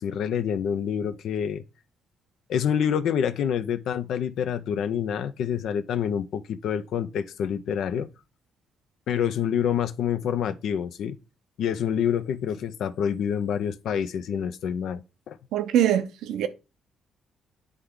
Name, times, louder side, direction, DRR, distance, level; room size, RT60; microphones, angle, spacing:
voice 1, 0.0-1.6 2.5-8.1 9.1-11.2 11.6-15.4, left 8 dB, 75° left, 0.5 m, -27 dB
voice 2, 15.5-16.5, right 10 dB, 85° right, 0.6 m, -23 dB
9.5 x 3.4 x 3.6 m
cardioid pair, 90°, 0 cm